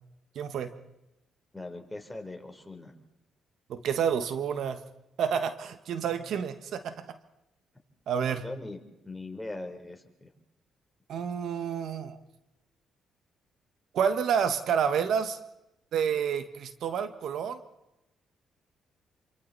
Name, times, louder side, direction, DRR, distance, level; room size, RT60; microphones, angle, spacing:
voice 1, 0.3-0.7 3.7-4.8 5.2-7.2 8.1-8.4 11.1-12.2 13.9-15.4 15.9-17.6, right 7 dB, 70° right, 9 dB, 1.5 m, -29 dB
voice 2, 1.5-2.9 6.0-6.1 8.4-8.8 9.0-10.3 11.2-11.3, left 2 dB, 10° left, 4 dB, 3.8 m, -40 dB
28.0 x 25.5 x 4.2 m, 0.91 s
cardioid pair, 90°, 0 cm